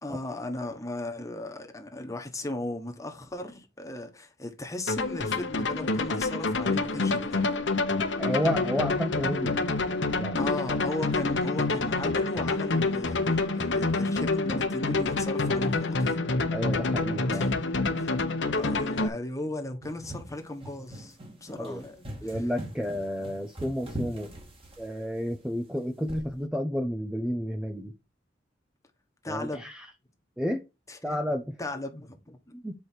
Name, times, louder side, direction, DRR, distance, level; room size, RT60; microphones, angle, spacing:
voice 1, 0.0-7.6 10.4-16.1 17.3-17.5 18.0-18.1 18.5-22.4 29.2-29.6 30.9-31.2 31.6-32.4, left 2 dB, 20° left, 1.3 m, -37 dB
sound 1, 4.9-19.1, left 3 dB, 70° left, 1.0 m, -27 dB
voice 2, 8.2-10.5 16.5-17.5 21.6-21.8 22.2-24.3 24.8-27.9 29.3-29.8 30.4-30.6 31.0-31.6 32.5-32.7, equal, 5° right, 0.6 m, -31 dB
Walking with socks, 19.8-25.2 26.1-26.4, right 1 dB, 30° right, 2.0 m, -41 dB
8.4 x 4.8 x 4.5 m
head